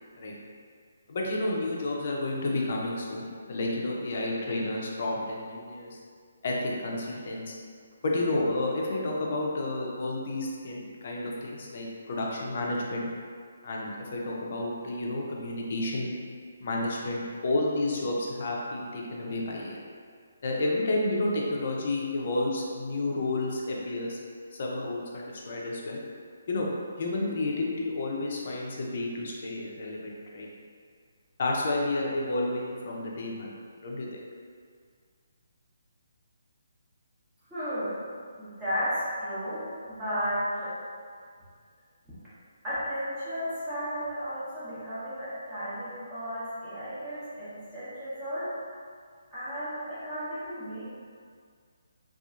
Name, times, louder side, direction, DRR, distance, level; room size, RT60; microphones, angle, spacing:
voice 1, 1.1-5.9 6.4-7.5 8.0-13.1 13.6-16.2 16.6-19.8 20.4-24.2 24.6-26.0 26.5-26.7 27.0-30.5 31.4-33.5 33.8-34.1, left 2 dB, 50° left, -2 dB, 0.5 m, -31 dB
voice 2, 37.5-38.0 38.4-40.7 42.6-48.5 49.3-50.9, equal, 15° right, -15 dB, 0.8 m, -33 dB
2.8 x 2.4 x 2.4 m, 2.1 s
figure-of-eight pair, 140°, 0 cm